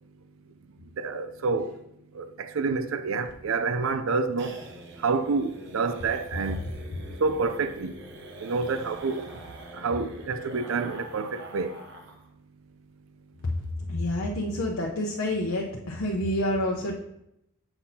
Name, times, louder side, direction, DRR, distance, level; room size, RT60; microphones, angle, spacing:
voice 1, 1.0-1.7 2.1-4.5 5.0-6.6 7.2-7.9 8.4-9.3 9.7-11.8, right 4 dB, 75° right, 0.5 m, -28 dB
sound 1, 3.2-12.3 12.6-12.7 13.0-13.1 13.4-13.8, right 1 dB, 55° right, 0.9 m, -45 dB
voice 2, 13.9-16.9, left 1 dB, 80° left, 0.8 m, -28 dB
7.9 x 5.9 x 2.8 m
head